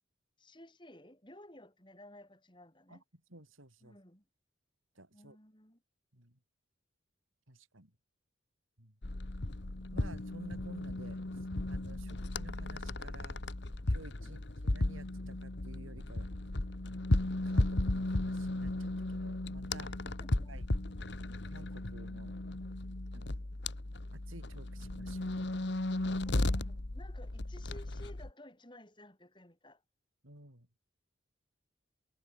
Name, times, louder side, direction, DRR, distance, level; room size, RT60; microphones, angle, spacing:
voice 1, 0.4-3.0 3.8-4.3 5.1-5.8 12.0-12.2 14.2-14.4 20.0-20.6 26.3-29.8, left 1 dB, 25° left, 7.7 m, -55 dB
voice 2, 3.3-4.0 4.9-5.4 6.1-6.4 7.5-7.9 8.8-8.9 9.9-11.2 11.7-13.4 13.9-16.3 17.4-19.9 20.5-20.6 21.4-22.3 23.1-23.5 24.1-25.3 30.2-30.7, right 1 dB, 85° right, 8.0 m, -53 dB
sound 1, 9.0-28.3, left 2 dB, 60° left, 1.3 m, -35 dB
head